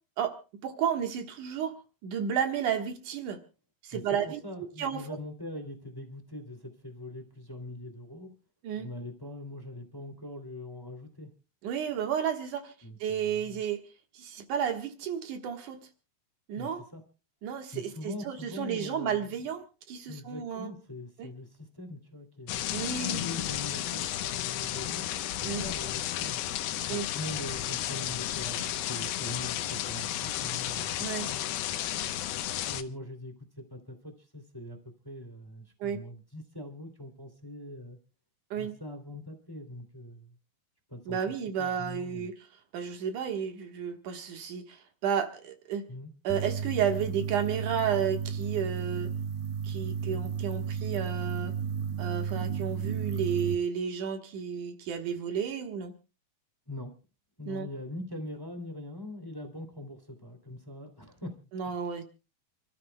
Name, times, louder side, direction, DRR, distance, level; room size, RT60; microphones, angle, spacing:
voice 1, 0.6-1.8 2.0-3.4 3.8-4.4 4.8-5.1 8.6-8.9 11.6-12.7 13.0-13.8 14.1-15.8 16.5-16.8 17.4-20.7 21.2-21.3 22.7-23.2 25.4-25.7 26.9-27.1 31.0-31.3 35.8-36.0 38.5-38.7 41.1-42.3 42.7-45.8 46.2-49.1 49.6-51.5 52.0-55.9 57.5-57.7 61.5-62.0, right 8 dB, 60° right, 6 dB, 2.7 m, -32 dB
voice 2, 3.9-8.4 8.8-11.3 12.8-13.6 16.5-17.0 17.7-19.4 20.0-22.6 23.0-25.1 25.4-31.5 32.6-38.0 38.5-40.3 40.9-42.3 45.9-46.1 56.6-56.9 57.4-61.4 61.8-62.0, left 1 dB, 10° left, 6 dB, 1.7 m, -42 dB
sound 1, 22.5-32.8, left 12 dB, 80° left, 2.6 m, -33 dB
sound 2, 46.3-53.5, right 7 dB, 85° right, 2.8 m, -33 dB
29.5 x 13.5 x 2.2 m, 0.32 s
omnidirectional pair, 4.4 m